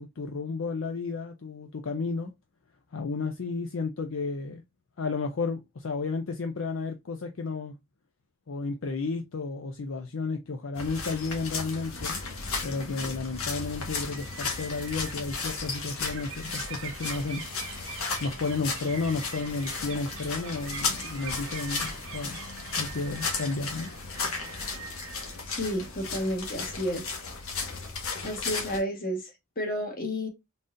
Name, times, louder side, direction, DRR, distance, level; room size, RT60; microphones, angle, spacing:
voice 1, 0.0-2.3 2.9-4.6 5.0-7.7 8.5-12.2 12.6-17.4 18.2-22.4 22.8-23.9, left 4 dB, 65° left, 0.5 m, -32 dB
sound 1, 10.7-28.8, left 4 dB, 85° left, 1.3 m, -35 dB
sound 2, 13.7-26.2, right 6 dB, 65° right, 0.7 m, -44 dB
voice 2, 25.5-27.1 28.2-30.3, equal, 45° left, 1.3 m, -31 dB
3.9 x 3.8 x 2.5 m
head